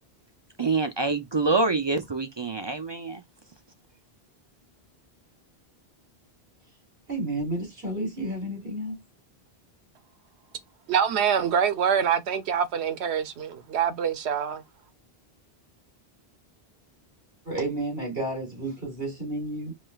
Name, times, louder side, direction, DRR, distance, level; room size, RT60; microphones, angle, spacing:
voice 1, 0.6-3.2, right 3 dB, 45° right, 0.3 m, -26 dB
voice 2, 7.1-9.0 17.4-19.7, right 1 dB, 65° right, 3.1 m, -31 dB
voice 3, 10.9-14.6, right 8 dB, 90° right, 0.9 m, -25 dB
5.0 x 3.2 x 2.3 m
omnidirectional pair, 1.1 m